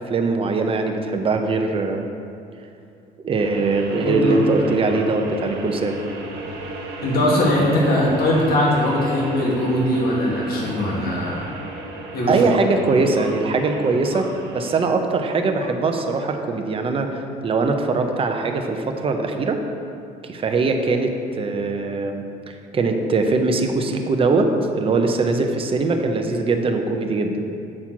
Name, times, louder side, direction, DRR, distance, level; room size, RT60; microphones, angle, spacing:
voice 1, 0.0-2.0 3.2-6.0 12.3-19.6 20.2-27.4, right 3 dB, 35° right, 4 dB, 0.7 m, -21 dB
sound 1, 3.4-14.8, right 1 dB, 70° right, 1.4 m, -34 dB
voice 2, 3.9-4.7 7.0-11.5 12.1-12.4, left 1 dB, 65° left, -3 dB, 1.8 m, -20 dB
7.5 x 4.2 x 6.0 m, 2.6 s
cardioid pair, 110°, 17 cm